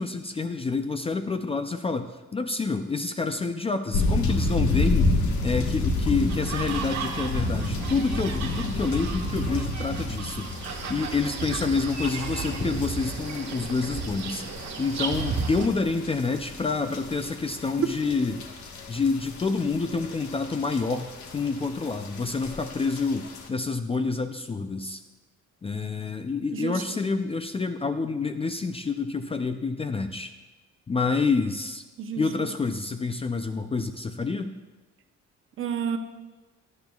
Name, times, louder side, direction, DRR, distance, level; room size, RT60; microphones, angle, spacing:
voice 1, 0.0-14.5 14.8-18.4 18.9-25.0 25.6-30.3 30.9-31.8 32.2-34.5, left 4 dB, 20° left, 7 dB, 0.4 m, -28 dB
sound 1, 3.9-23.5, left 2 dB, 75° left, 1.4 m, -31 dB
sound 2, 6.3-15.7, right 4 dB, 70° right, 1.6 m, -33 dB
voice 2, 26.5-27.0 32.0-32.5 35.6-36.0, right 7 dB, 45° right, 7 dB, 0.8 m, -30 dB
17.5 x 11.5 x 2.3 m, 1.2 s
cardioid pair, 135°, 29 cm